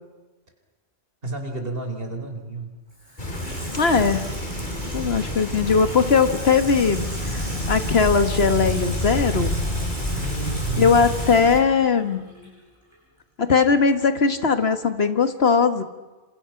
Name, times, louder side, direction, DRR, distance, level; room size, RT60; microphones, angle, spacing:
voice 1, 1.2-2.7 10.1-11.0, right 3 dB, 60° right, 5 dB, 4.4 m, -31 dB
Water tap faucet / Sink (filling or washing), 2.9-12.6 12.9-13.0, equal, 25° right, 7.7 m, -38 dB
sound 1, 3.2-11.6, left 1 dB, 45° left, 3.9 m, -28 dB
voice 2, 3.7-4.3 4.9-9.6 10.8-12.3 13.4-15.8, left 5 dB, 70° left, 9 dB, 1.8 m, -20 dB
28.0 x 26.5 x 5.9 m, 1.2 s
omnidirectional pair, 1.1 m